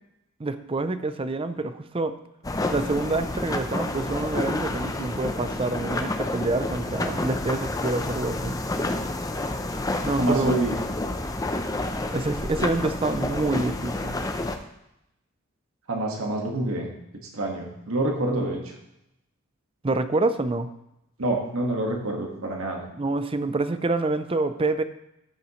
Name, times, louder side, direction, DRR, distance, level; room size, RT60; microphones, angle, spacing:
voice 1, 0.4-2.2 2.7-8.6 10.0-10.6 12.1-14.2 19.8-20.7 22.9-24.8, right 2 dB, 25° right, 11 dB, 0.5 m, -27 dB
sound 1, 2.4-14.6, left 2 dB, 15° left, 0.6 m, -29 dB
voice 2, 10.2-10.8 15.9-16.9 17.3-18.7 21.2-22.8, right 1 dB, 80° right, 1 dB, 1.7 m, -27 dB
13.0 x 6.7 x 3.1 m, 0.84 s
head